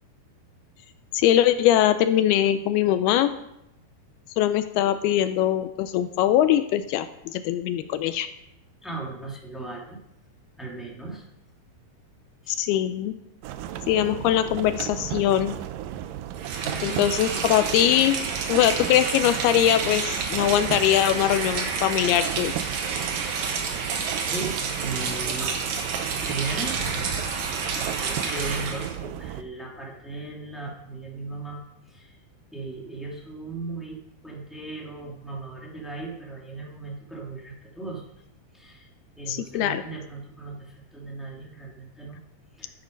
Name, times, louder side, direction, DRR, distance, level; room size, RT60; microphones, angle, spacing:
voice 1, 1.1-3.3 4.4-8.3 12.5-13.1 13.9-15.6 16.8-18.2 18.5-22.5 39.3-39.8, left 11 dB, 80° left, 11 dB, 2.4 m, -22 dB
voice 2, 8.8-10.0 10.6-11.3 12.4-12.6 16.6-17.0 24.3-25.5 26.2-27.2 27.7-31.6 31.9-32.2 32.5-38.0 38.5-38.9 39.2-42.2 42.6-42.7, right 3 dB, ahead, -3 dB, 0.9 m, -37 dB
sound 1, 13.4-29.4, right 11 dB, 90° right, 1.9 m, -35 dB
Rain, 16.3-28.9, right 5 dB, 55° right, 2.2 m, -30 dB
13.0 x 9.1 x 5.2 m, 0.82 s
omnidirectional pair, 4.7 m